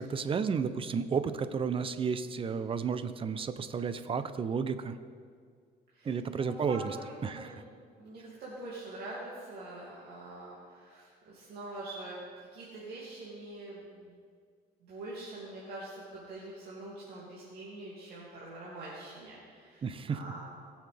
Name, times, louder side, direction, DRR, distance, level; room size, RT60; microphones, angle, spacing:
voice 1, 0.0-5.0 6.0-6.9 7.2-7.6 19.8-20.2, right 6 dB, 30° right, 11 dB, 0.7 m, -32 dB
voice 2, 5.9-7.7 8.0-12.2 12.5-14.1 14.8-20.4, right 2 dB, 70° right, -7 dB, 2.7 m, -44 dB
20.0 x 7.2 x 3.5 m, 2.1 s
cardioid pair, 110°, 17 cm